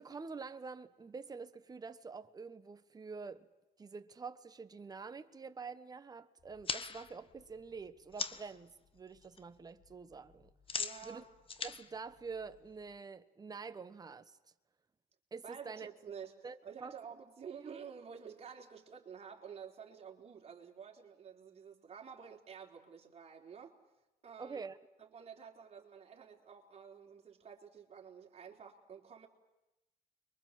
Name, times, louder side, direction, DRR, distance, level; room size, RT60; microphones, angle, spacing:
voice 1, 0.0-3.5 3.8-10.5 11.0-11.2 11.6-14.4 15.3-15.9 16.4-16.5 16.8-17.0 17.6-17.8 24.4-24.8, right 5 dB, 20° right, 1.3 m, -47 dB
sound 1, 6.4-8.6 9.0-9.4 9.7-12.9, left 5 dB, 30° left, 1.3 m, -42 dB
voice 2, 10.8-11.3 15.4-23.8 24.2-24.6 25.0-29.3, right 7 dB, 40° right, 4.1 m, -51 dB
29.5 x 23.5 x 7.6 m
cardioid pair, 110°, 17 cm